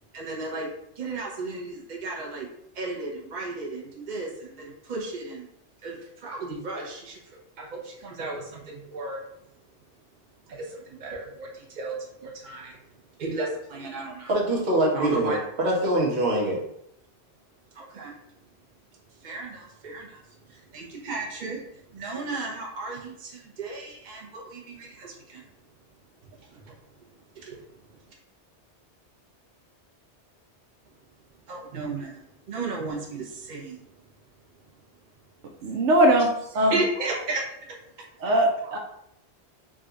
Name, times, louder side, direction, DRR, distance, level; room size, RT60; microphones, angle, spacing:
voice 1, 0.1-0.7 1.0-2.5 2.7-5.5 5.8-9.2 10.5-14.4 14.9-15.4 17.7-18.1 19.1-25.4 26.3-27.1 27.3-27.6 27.9-28.0 31.5-33.8 36.5-37.4, right 3 dB, 45° right, -2 dB, 0.9 m, -35 dB
voice 2, 14.3-16.6, right 1 dB, 70° right, -2 dB, 1.2 m, -24 dB
voice 3, 35.6-36.3 36.5-36.7 38.2-38.8, right 1 dB, 85° right, 1 dB, 0.9 m, -20 dB
3.8 x 2.3 x 3.8 m, 0.75 s
omnidirectional pair, 1.2 m